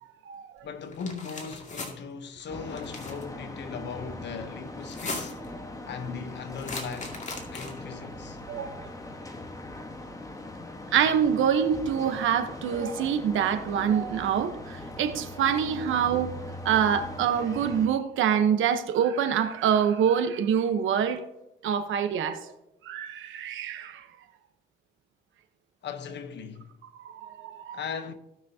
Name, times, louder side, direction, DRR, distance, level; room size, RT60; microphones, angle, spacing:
voice 1, 0.6-5.4 5.9-7.2 7.5-8.4 25.8-26.7 27.7-28.1, left 6 dB, 60° left, 1.1 m, -38 dB
sound 1, 0.9-1.9 2.7-3.2 4.8-5.5 6.6-7.9, left 3 dB, 35° left, 2.3 m, -38 dB
sound 2, 2.5-17.9, left 1 dB, 15° left, 1.3 m, -40 dB
voice 2, 8.5-8.8 10.9-16.3 16.6-21.2 21.6-22.5 22.8-24.1 27.0-27.8, right 8 dB, 80° right, 1.1 m, -25 dB
17.5 x 6.2 x 2.8 m
cardioid pair, 90°, 20 cm